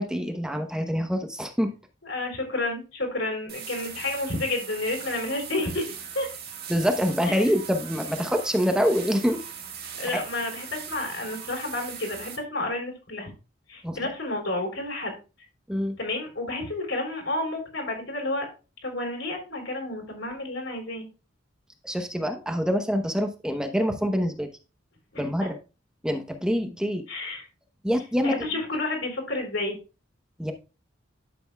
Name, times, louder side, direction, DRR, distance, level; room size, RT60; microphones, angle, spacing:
voice 1, 0.0-1.7 6.7-9.4 10.1-10.2 13.8-14.0 15.7-16.0 21.8-24.5 25.2-25.6 26.0-27.0 27.8-28.4 30.4-30.5, equal, 5° right, 5 dB, 0.8 m, -25 dB
voice 2, 2.0-6.3 7.2-7.5 10.0-13.3 13.7-15.2 16.0-18.5 18.8-21.1 25.1-25.2 27.1-27.4 28.2-29.8, left 2 dB, 75° left, 1 dB, 3.4 m, -30 dB
sound 1, 3.5-12.4, right 7 dB, 55° right, 1.7 m, -40 dB
11.0 x 7.0 x 2.3 m, 0.31 s
head